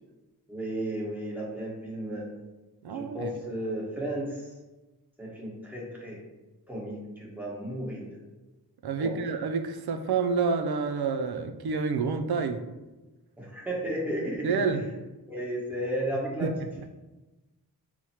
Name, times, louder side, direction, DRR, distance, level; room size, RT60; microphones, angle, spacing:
voice 1, 0.5-2.3 2.9-4.5 5.2-6.2 6.7-8.2 9.0-9.2 13.4-14.6 15.3-16.5, right 1 dB, 5° right, -5 dB, 1.3 m, -34 dB
voice 2, 2.8-3.3 8.8-12.6 14.4-14.8 16.4-16.5, right 5 dB, 70° right, 7 dB, 0.5 m, -28 dB
6.1 x 2.1 x 2.8 m, 1.1 s
wide cardioid pair, 65°, 39 cm